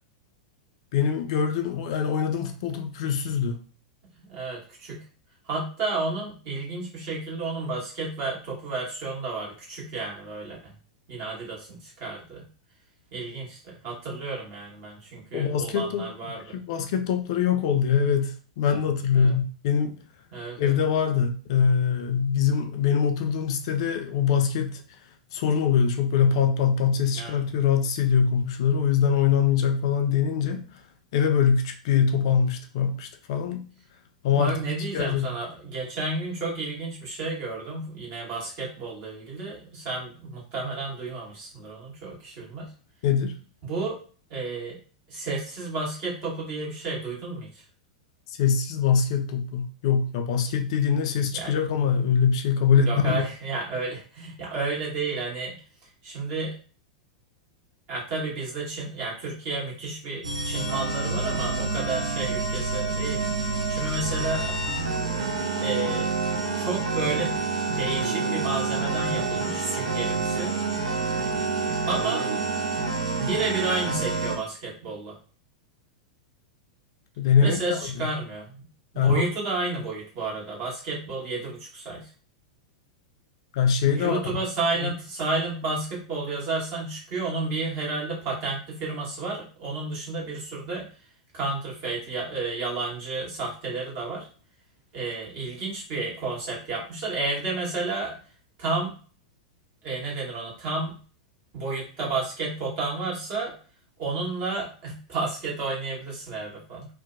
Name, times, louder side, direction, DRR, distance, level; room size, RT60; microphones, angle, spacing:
voice 1, 0.9-3.6 15.3-16.1 16.5-20.0 20.6-24.8 25.3-30.6 31.1-33.6 34.2-34.6 34.9-35.3 43.0-43.3 48.4-53.3 77.2-78.1 79.0-79.1 83.5-84.2 84.8-84.9, left 7 dB, 55° left, 5 dB, 0.3 m, -23 dB
voice 2, 4.2-5.0 5.4-10.6 11.1-12.4 13.1-16.6 18.6-18.8 19.1-19.3 20.3-20.7 27.1-27.4 34.3-42.7 43.6-44.0 44.3-44.8 45.1-47.6 51.3-51.6 52.8-55.6 56.0-56.5 57.9-64.6 65.6-66.1 66.5-67.3 67.7-70.6 71.9-72.3 73.2-75.2 77.4-78.7 78.9-82.1 83.9-90.9 91.3-94.3 94.9-98.2 98.6-99.0 99.8-101.0 101.5-103.5 104.0-106.9, right 3 dB, 45° right, -4 dB, 1.2 m, -31 dB
sound 1, 60.2-74.4, right 4 dB, 70° right, 0.5 m, -28 dB
2.6 x 2.1 x 2.5 m, 0.39 s
figure-of-eight pair, 95°, 4 cm